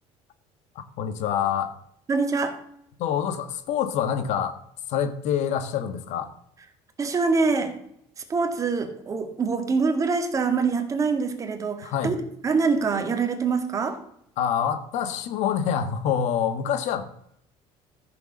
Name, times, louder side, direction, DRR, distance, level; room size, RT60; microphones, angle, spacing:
voice 1, 1.0-1.7 3.0-4.6 4.9-6.3 11.8-12.1 14.4-17.1, left 8 dB, 65° left, 10 dB, 1.4 m, -26 dB
voice 2, 2.1-2.6 7.0-7.8 8.2-14.0, right 4 dB, 25° right, 6 dB, 1.9 m, -25 dB
13.5 x 6.7 x 6.5 m, 0.72 s
cardioid pair, 150°, 13 cm